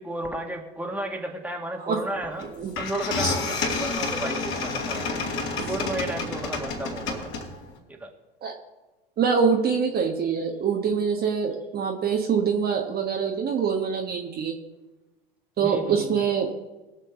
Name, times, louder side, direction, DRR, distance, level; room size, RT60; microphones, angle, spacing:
voice 1, 0.0-2.4 2.8-5.2 5.7-7.3 7.9-8.1 15.6-16.2, right 1 dB, 5° right, 2 dB, 2.0 m, -33 dB
sound 1, 2.4-2.5 2.8-7.7, left 3 dB, 40° left, 3.6 m, -29 dB
voice 2, 9.2-14.6 15.6-16.5, right 6 dB, 30° right, 1 dB, 1.4 m, -24 dB
21.5 x 7.5 x 3.8 m, 1.1 s
figure-of-eight pair, 80°, 31 cm